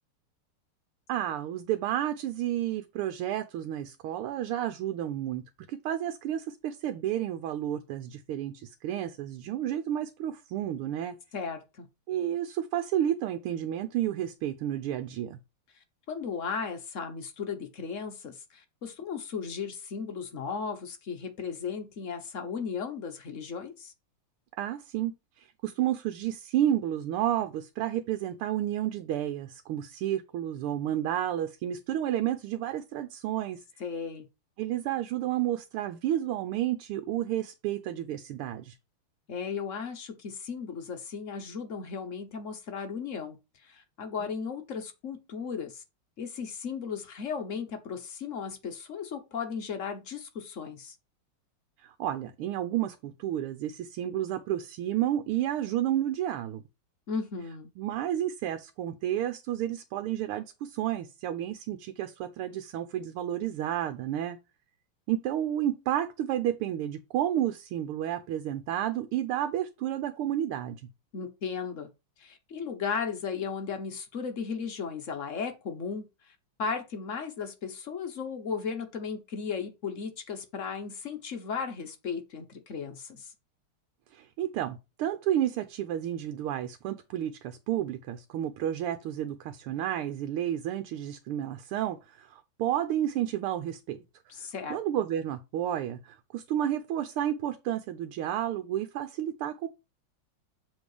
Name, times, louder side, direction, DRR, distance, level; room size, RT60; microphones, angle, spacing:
voice 1, 1.1-5.4 5.7-11.1 12.1-15.4 24.6-33.6 34.6-38.7 51.8-56.6 57.8-64.4 65.1-70.8 84.1-94.0 94.7-99.7, right 11 dB, 90° right, 1.6 m, -31 dB
voice 2, 11.3-11.9 16.1-23.9 33.8-34.3 39.3-45.8 46.2-51.0 57.1-57.7 71.1-71.9 72.2-83.3 94.3-94.8, left 6 dB, 50° left, 1.0 m, -36 dB
7.2 x 3.7 x 4.8 m
omnidirectional pair, 2.3 m